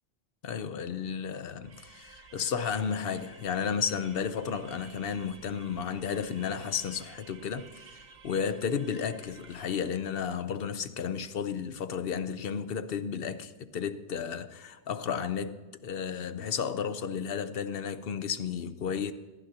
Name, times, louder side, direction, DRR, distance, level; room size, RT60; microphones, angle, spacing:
voice 1, 0.4-19.1, left 7 dB, 65° left, 0.9 m, -33 dB
sound 1, 1.6-10.2, right 5 dB, 50° right, 0.8 m, -54 dB
22.0 x 16.0 x 2.8 m
omnidirectional pair, 1.1 m